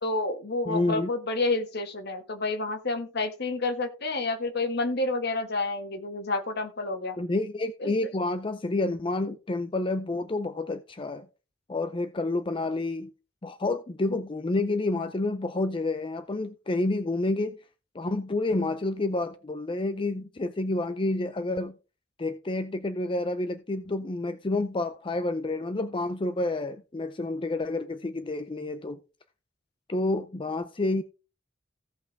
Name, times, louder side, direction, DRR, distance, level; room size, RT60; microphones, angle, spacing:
voice 1, 0.0-7.2 7.8-7.9, left 2 dB, 55° left, 1.7 m, -29 dB
voice 2, 0.7-1.1 7.2-11.3 11.7-13.1 13.4-17.6 17.9-21.8 22.2-29.0 29.9-31.0, left 2 dB, 25° left, 0.5 m, -29 dB
16.0 x 5.8 x 3.4 m
head